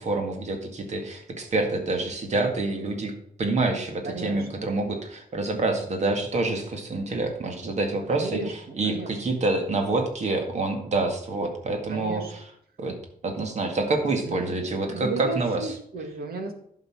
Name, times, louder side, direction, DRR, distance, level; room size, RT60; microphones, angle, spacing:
voice 1, 0.0-3.1 3.4-12.4 12.8-13.0 13.2-15.6, right 2 dB, 50° right, 4 dB, 1.9 m, -27 dB
voice 2, 4.0-4.7 8.1-9.1 11.9-12.3 14.2-16.5, right 3 dB, 85° right, 5 dB, 1.8 m, -34 dB
11.5 x 6.7 x 4.8 m, 0.70 s
wide cardioid pair, 155°, 15 cm